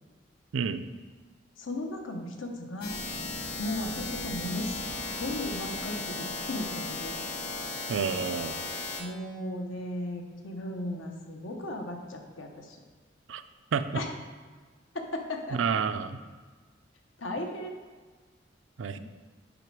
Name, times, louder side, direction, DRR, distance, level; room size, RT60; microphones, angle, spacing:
voice 1, 1.6-3.0 3.6-4.8 5.1-7.2 9.0-12.8 13.9-14.1 14.9-15.6 17.2-17.7, left 1 dB, 85° left, 3 dB, 1.0 m, -36 dB
sound 1, 2.8-9.0, left 3 dB, 50° left, 1.5 m, -36 dB
voice 2, 7.9-8.5 13.3-13.4 13.7-13.9 15.5-16.1 18.8-19.0, right 6 dB, 75° right, 11 dB, 0.4 m, -29 dB
7.8 x 5.2 x 4.7 m, 1.4 s
head